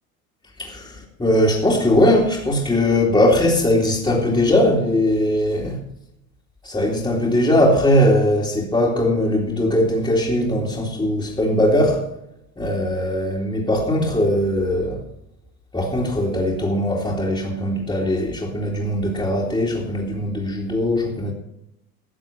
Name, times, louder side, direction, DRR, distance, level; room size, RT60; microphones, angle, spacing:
voice 1, 0.6-5.8 6.6-12.1 12.6-15.0 15.7-21.3, left 1 dB, 10° left, 2.7 m, -20 dB
13.5 x 7.3 x 7.2 m
hypercardioid pair, 80°, 43 cm